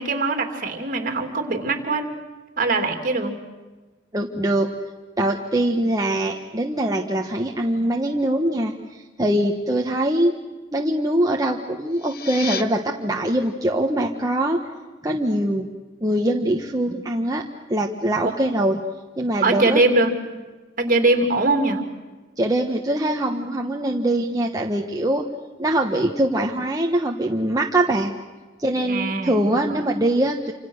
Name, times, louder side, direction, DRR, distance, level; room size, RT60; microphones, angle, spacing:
voice 1, 0.0-2.1 2.6-3.4 18.2-18.4 19.4-20.1 20.8-21.8 28.9-29.8, right 2 dB, 45° right, 5 dB, 3.0 m, -22 dB
voice 2, 4.1-4.7 5.2-10.3 10.7-14.6 15.0-15.7 16.0-17.4 17.7-18.8 19.2-19.8 22.4-25.2 25.6-28.1 28.6-30.5, right 1 dB, 20° right, 1 dB, 1.2 m, -22 dB
sound 1, 11.8-12.6, left 7 dB, 55° left, 1.2 m, -32 dB
28.0 x 26.5 x 6.5 m, 1.2 s
head